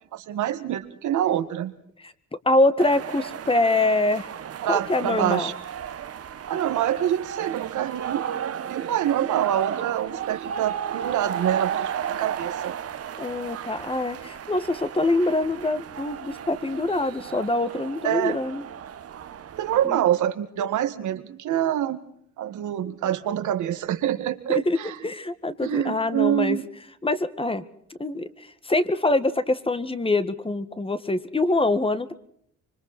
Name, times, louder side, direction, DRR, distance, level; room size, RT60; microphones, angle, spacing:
voice 1, 0.1-1.7 4.6-5.5 6.5-12.7 18.0-18.4 19.5-22.1 22.4-25.1 25.6-26.7, right 11 dB, 80° right, 10 dB, 2.0 m, -26 dB
voice 2, 2.5-4.3 4.7-5.5 13.2-18.6 19.8-20.0 24.5-26.6 27.0-27.6 28.0-32.1, left 2 dB, 20° left, 12 dB, 1.7 m, -24 dB
sound 1, 2.8-19.9, right 9 dB, 50° right, 1.3 m, -34 dB
26.0 x 24.5 x 4.3 m, 0.67 s
cardioid pair, 90°, 30 cm